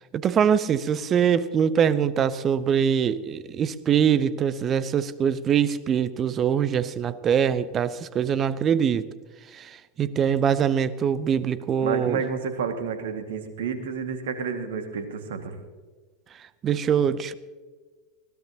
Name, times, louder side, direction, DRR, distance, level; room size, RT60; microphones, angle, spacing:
voice 1, 0.2-9.1 9.5-12.2 16.6-17.3, right 8 dB, 30° right, 16 dB, 0.8 m, -23 dB
voice 2, 11.8-15.6, right 6 dB, 60° right, 7 dB, 1.9 m, -30 dB
21.5 x 16.0 x 2.9 m, 1.3 s
figure-of-eight pair, 80°, 0 cm